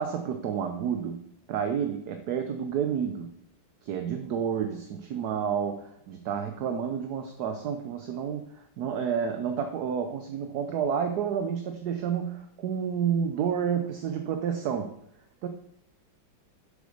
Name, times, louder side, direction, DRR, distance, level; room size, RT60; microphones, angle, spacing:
voice 1, 0.0-3.3 3.8-15.0 15.4-15.5, right 7 dB, 65° right, 7 dB, 1.2 m, -30 dB
7.5 x 7.1 x 6.4 m, 0.75 s
omnidirectional pair, 2.0 m